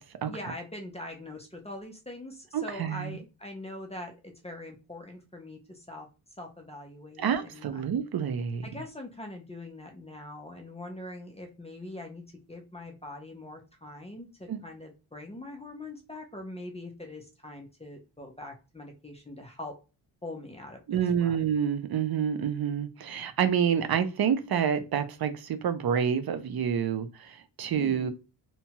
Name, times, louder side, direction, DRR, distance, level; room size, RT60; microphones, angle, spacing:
voice 1, 0.3-6.1 6.4-7.8 8.6-12.2 12.5-19.7 20.2-21.4 27.8-28.1, left 1 dB, 15° left, 0.5 m, -43 dB
voice 2, 2.5-3.2 7.2-8.6 14.5-14.6 20.9-28.1, right 8 dB, 55° right, 0.5 m, -28 dB
2.8 x 2.2 x 2.8 m
wide cardioid pair, 165°, 44 cm